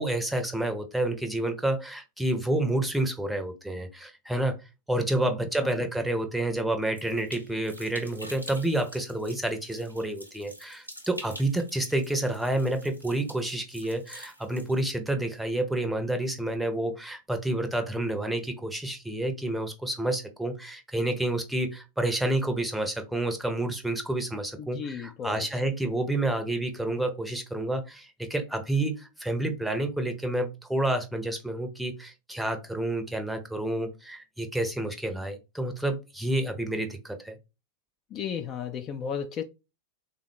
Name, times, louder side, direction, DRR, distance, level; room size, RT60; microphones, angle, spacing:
voice 1, 0.0-4.6 4.9-37.4, right 1 dB, 5° right, 0.6 m, -29 dB
sound 1, 6.9-14.8, equal, 90° right, 0.6 m, -46 dB
voice 2, 24.6-25.7 38.1-39.4, left 7 dB, 30° left, 0.3 m, -35 dB
3.6 x 2.2 x 3.2 m
figure-of-eight pair, 90°, 0 cm